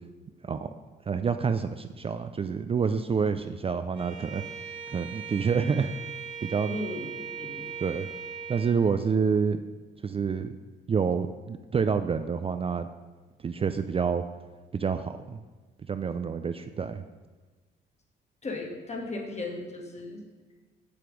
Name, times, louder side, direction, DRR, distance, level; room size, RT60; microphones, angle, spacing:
voice 1, 1.1-4.4 4.9-5.9 6.4-6.8 7.8-8.1 8.5-9.6 10.0-10.5 10.9-12.9 13.4-14.2 14.7-15.4 15.9-17.0, right 6 dB, 30° right, 9 dB, 0.4 m, -28 dB
Bowed string instrument, 3.9-8.8, right 7 dB, 70° right, 1.4 m, -39 dB
voice 2, 6.7-7.1 7.4-7.7 18.4-20.3, left 2 dB, 35° left, 2 dB, 1.8 m, -36 dB
7.8 x 6.7 x 5.2 m, 1.3 s
cardioid pair, 90°, 20 cm